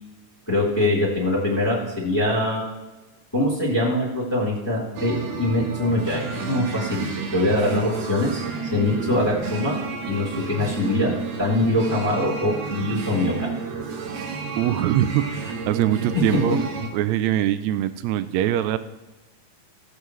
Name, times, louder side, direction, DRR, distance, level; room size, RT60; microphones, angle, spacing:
voice 1, 0.5-2.6 3.3-8.5 8.7-9.8 10.1-13.5, left 1 dB, 10° left, -5 dB, 3.1 m, -23 dB
sound 1, 5.0-16.9, right 5 dB, 65° right, 2.1 m, -30 dB
voice 2, 14.6-15.4 15.7-16.6 16.9-18.8, right 12 dB, 80° right, 12 dB, 1.7 m, -22 dB
17.0 x 8.2 x 3.1 m, 1.1 s
omnidirectional pair, 3.6 m